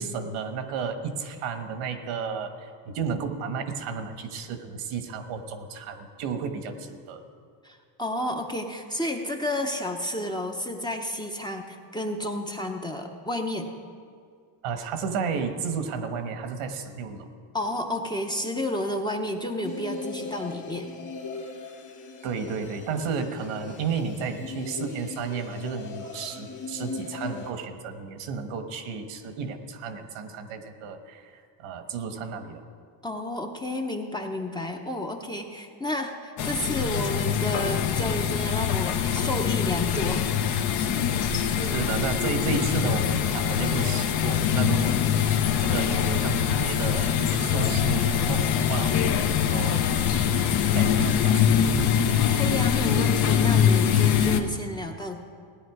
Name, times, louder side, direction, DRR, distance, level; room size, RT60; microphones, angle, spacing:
voice 1, 0.0-7.2 14.6-17.3 22.2-31.3 31.6-32.6 41.3-41.4 41.7-51.8, right 5 dB, 75° right, 7 dB, 1.4 m, -33 dB
voice 2, 7.6-13.7 17.5-20.9 33.0-40.3 41.2-41.9 52.3-55.2, left 1 dB, 10° left, 2 dB, 0.8 m, -31 dB
sound 1, 19.6-27.5, left 4 dB, 35° left, 1.9 m, -39 dB
sound 2, 36.4-54.4, left 8 dB, 50° left, 1.0 m, -23 dB
16.5 x 10.0 x 4.8 m, 2.2 s
cardioid pair, 130°, 50 cm